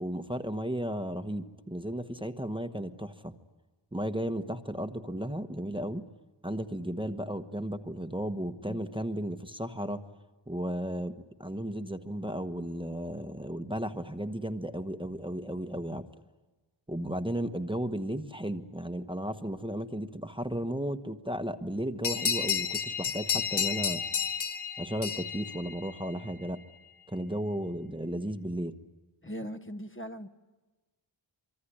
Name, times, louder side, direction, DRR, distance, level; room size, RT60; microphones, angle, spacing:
voice 1, 0.0-3.3 3.9-6.0 6.4-10.0 10.5-16.1 16.9-24.0 24.8-26.6 27.1-28.7, right 1 dB, 10° right, 8 dB, 1.1 m, -34 dB
sound 1, 22.0-26.3, left 7 dB, 90° left, 1.8 m, -32 dB
voice 2, 29.2-30.3, equal, 25° left, 8 dB, 1.2 m, -39 dB
25.0 x 24.0 x 10.0 m, 1.2 s
wide cardioid pair, 80°, 47 cm